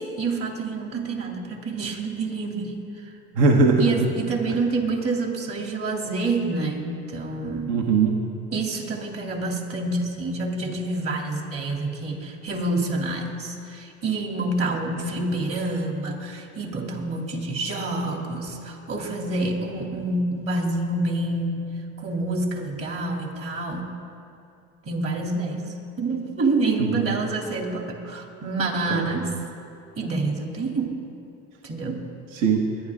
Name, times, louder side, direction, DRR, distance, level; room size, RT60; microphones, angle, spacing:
voice 1, 0.0-3.1 3.8-7.7 8.5-21.7 22.0-23.9 24.8-29.4 30.0-31.0 31.6-32.0, right 2 dB, 45° right, 1 dB, 2.9 m, -27 dB
voice 2, 3.3-4.1 7.7-8.2 26.8-27.1 28.9-29.0 32.3-32.7, right 4 dB, 60° right, 2 dB, 1.4 m, -20 dB
22.5 x 10.5 x 3.7 m, 2.7 s
supercardioid pair, 90°, 34 cm